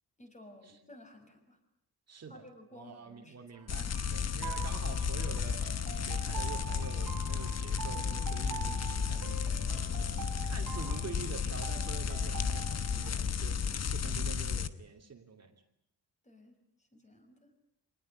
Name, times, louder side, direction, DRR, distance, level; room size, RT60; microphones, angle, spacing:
voice 1, 0.2-1.6 2.3-3.4 16.2-17.5, left 1 dB, 20° left, 4 dB, 6.1 m, -55 dB
voice 2, 2.1-2.4 2.7-9.4 9.9-15.6, right 5 dB, 40° right, 4 dB, 2.8 m, -47 dB
sound 1, 3.5-13.1, right 8 dB, 60° right, 3.5 m, -45 dB
sound 2, 3.7-14.7, left 6 dB, 40° left, 1.2 m, -33 dB
26.5 x 19.5 x 9.8 m, 0.76 s
wide cardioid pair, 150°, 39 cm